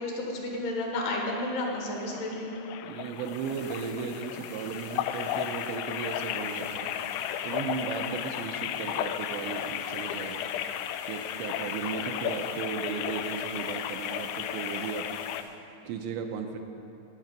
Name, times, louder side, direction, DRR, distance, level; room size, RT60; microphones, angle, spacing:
voice 1, 0.0-2.5, left 2 dB, 65° left, 0 dB, 3.1 m, -32 dB
sound 1, 1.0-15.4, left 10 dB, 85° left, 2.8 m, -34 dB
voice 2, 2.8-6.9 7.4-10.4 11.1-15.1 15.8-16.6, right 6 dB, 80° right, 4 dB, 2.8 m, -36 dB
sound 2, 2.9-15.4, equal, 5° right, 0.7 m, -53 dB
16.5 x 5.6 x 9.0 m, 2.9 s
omnidirectional pair, 5.5 m